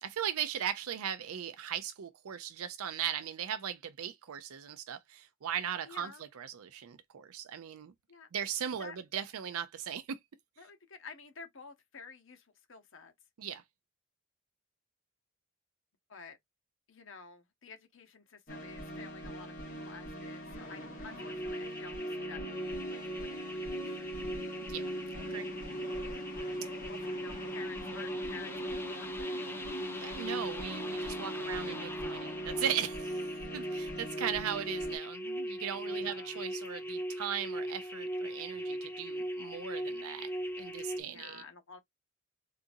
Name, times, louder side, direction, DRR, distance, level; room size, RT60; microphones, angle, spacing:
voice 1, 0.0-7.9 8.3-10.2 13.4-13.6 24.6-25.5 30.0-40.3 40.6-41.4, right 9 dB, 85° right, 0.5 m, -38 dB
voice 2, 5.8-6.2 8.1-8.3 8.8-9.0 10.6-13.1 16.1-16.4 16.9-24.6 26.9-29.5 35.8-36.4 40.9-41.8, left 5 dB, 65° left, 0.9 m, -51 dB
sound 1, 18.5-35.0, equal, 40° left, 1.6 m, -43 dB
sound 2, 21.2-41.0, equal, 10° left, 0.4 m, -39 dB
3.8 x 2.5 x 2.6 m
head